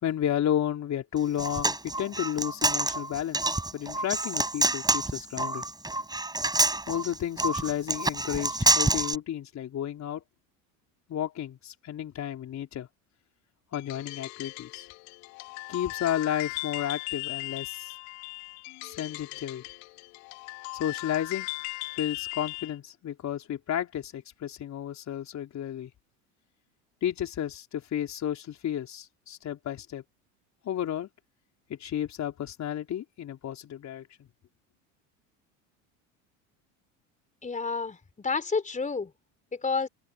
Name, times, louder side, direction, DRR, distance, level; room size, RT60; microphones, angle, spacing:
voice 1, 0.0-5.6 6.9-10.2 11.1-12.9 13.7-14.9 15.7-17.9 18.8-19.6 20.7-21.5 22.0-25.9 27.0-30.0 30.6-31.1 31.7-34.1, left 10 dB, 45° left, 4.1 m, -32 dB
Human voice, 1.2-9.1, right 2 dB, 10° right, 7.7 m, -27 dB
sound 1, 13.7-22.8, left 28 dB, 70° left, 2.9 m, -38 dB
voice 2, 37.4-39.1 39.5-39.9, left 4 dB, 20° left, 4.2 m, -30 dB
hypercardioid pair, 90°, 40 cm